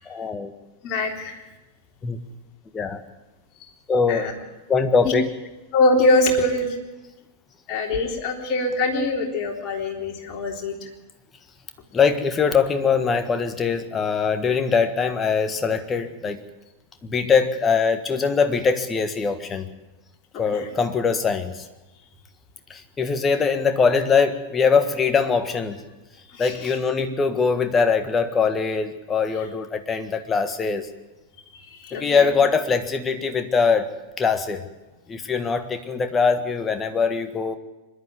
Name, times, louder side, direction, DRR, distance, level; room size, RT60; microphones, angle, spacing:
voice 1, 0.1-0.5 2.0-2.2 2.7-3.0 3.9-4.3 4.7-5.3 11.9-16.4 17.0-19.7 20.4-21.6 22.7-25.8 26.4-30.9 31.9-33.9 34.2-34.6 35.1-37.6, left 5 dB, 20° left, 8 dB, 1.7 m, -22 dB
voice 2, 0.8-1.4 4.1-4.3 5.7-6.7 7.7-10.9 20.5-20.7 26.3-26.7 31.5-32.3, left 2 dB, 35° left, 0 dB, 3.6 m, -23 dB
25.0 x 11.0 x 9.3 m, 1.1 s
figure-of-eight pair, 90°, 0 cm